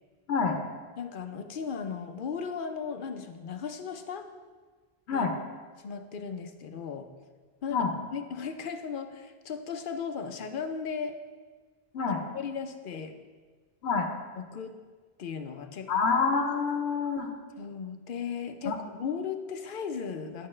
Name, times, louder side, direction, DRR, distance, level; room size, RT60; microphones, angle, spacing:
voice 1, 1.0-4.3 5.1-5.3 5.8-7.1 7.6-11.2 12.3-13.1 14.4-14.8 15.2-15.9 17.6-20.5, left 6 dB, 60° left, 7 dB, 0.7 m, -36 dB
voice 2, 15.9-17.3 18.6-18.7 19.0-19.1, left 5 dB, 90° left, 3 dB, 1.0 m, -27 dB
10.5 x 6.7 x 3.2 m, 1.5 s
omnidirectional pair, 1.1 m